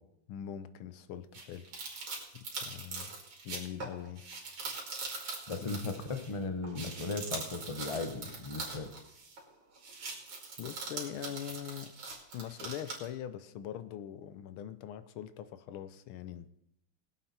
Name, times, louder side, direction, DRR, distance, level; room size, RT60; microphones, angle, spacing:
voice 1, 0.3-1.7 2.3-3.2 3.4-4.2 10.6-11.9 12.3-16.5, left 10 dB, 75° left, 13 dB, 1.5 m, -42 dB
sound 1, 1.3-6.4 6.6-9.5 9.8-13.1, right 3 dB, 90° right, 3.4 m, -42 dB
voice 2, 5.5-8.9, left 3 dB, 60° left, 7 dB, 0.3 m, -37 dB
20.0 x 8.0 x 4.3 m, 0.78 s
omnidirectional pair, 2.4 m